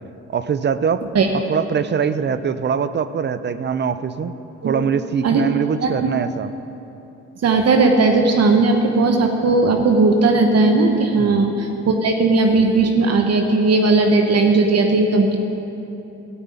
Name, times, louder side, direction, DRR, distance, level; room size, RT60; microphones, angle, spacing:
voice 1, 0.3-1.0 1.3-4.3 4.6-6.5 11.2-11.5, right 7 dB, 35° right, 13 dB, 0.5 m, -22 dB
voice 2, 7.4-15.4, right 3 dB, 55° right, 4 dB, 1.1 m, -17 dB
14.0 x 5.5 x 8.8 m, 2.9 s
cardioid pair, 90°, 30 cm